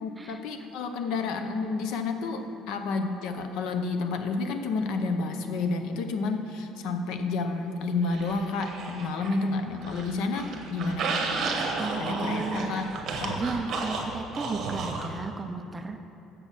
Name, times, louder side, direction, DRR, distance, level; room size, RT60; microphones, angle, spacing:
voice 1, 0.0-11.3 12.0-12.9 13.2-13.4, left 3 dB, 70° left, 6 dB, 0.7 m, -30 dB
sound 1, 8.1-9.4 9.8-15.1, right 3 dB, 45° right, 1.0 m, -32 dB
voice 2, 11.8-12.8 13.4-16.0, right 4 dB, 15° right, 6 dB, 0.4 m, -34 dB
6.8 x 6.3 x 7.3 m, 2.7 s
cardioid pair, 160°, 0 cm